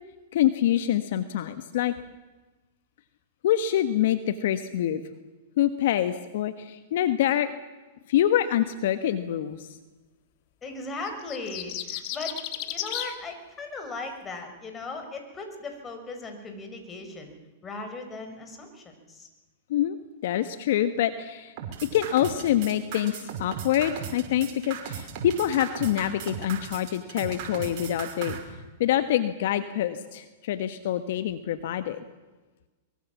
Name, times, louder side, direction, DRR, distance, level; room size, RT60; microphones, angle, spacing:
voice 1, 0.3-1.9 3.4-5.0 5.6-7.5 8.1-9.8 19.7-20.0 20.2-21.5 21.9-28.4 28.8-32.0, left 11 dB, 65° left, 10 dB, 1.3 m, -26 dB
voice 2, 10.6-17.3 17.6-19.3, left 3 dB, 20° left, 5 dB, 5.5 m, -38 dB
sound 1, 11.0-13.1, left 12 dB, 50° left, 2.6 m, -33 dB
sound 2, 21.6-28.4, right 8 dB, 50° right, 5.7 m, -36 dB
23.5 x 22.5 x 7.3 m, 1.2 s
hypercardioid pair, 115°, 0 cm